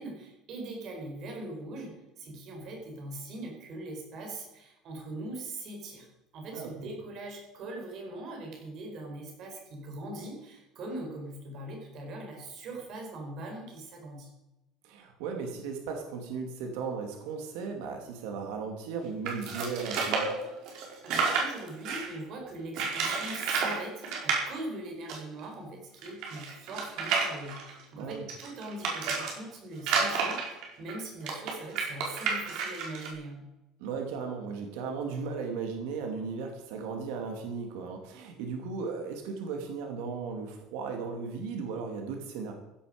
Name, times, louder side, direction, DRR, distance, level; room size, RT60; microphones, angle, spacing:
voice 1, 0.0-6.1 6.3-14.3 21.0-33.4, right 2 dB, 40° right, 1 dB, 4.6 m, -41 dB
voice 2, 6.5-6.9 14.8-20.3 28.0-28.3 33.8-42.5, right 5 dB, 90° right, 3 dB, 2.4 m, -36 dB
sound 1, 19.2-22.1 22.7-23.8 24.0-24.4 25.1-25.2 25.4-25.5 26.0-29.3 29.8-33.1, right 5 dB, 55° right, 4.5 m, -30 dB
16.0 x 11.0 x 5.1 m, 0.98 s
cardioid pair, 180°, 0 cm